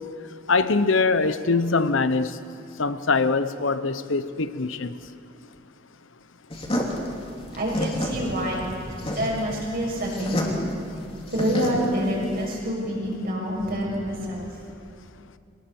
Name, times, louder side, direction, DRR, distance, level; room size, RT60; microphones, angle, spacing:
voice 1, 0.5-2.4 2.8-4.9, left 4 dB, 70° left, 13 dB, 0.9 m, -23 dB
sound 1, 6.5-12.5, left 1 dB, 30° left, 2.8 m, -30 dB
voice 2, 7.5-10.5 11.3-14.5, equal, 50° right, -3 dB, 6.6 m, -27 dB
22.5 x 19.5 x 7.0 m, 2.6 s
head